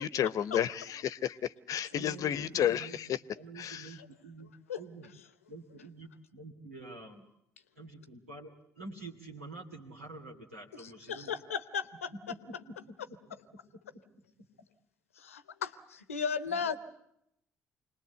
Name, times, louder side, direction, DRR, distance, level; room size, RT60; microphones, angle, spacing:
voice 1, 0.0-1.4 1.7-3.1 3.6-3.8, left 10 dB, 50° left, 0.8 m, -31 dB
voice 2, 1.9-3.0 3.3-5.1 5.5-7.2 7.8-11.3 12.1-12.9 16.5-16.7, right 2 dB, 90° right, 2.6 m, -48 dB
voice 3, 10.7-12.1 15.2-16.8, left 6 dB, 85° left, 0.9 m, -36 dB
26.5 x 20.0 x 8.1 m
figure-of-eight pair, 50°, 7 cm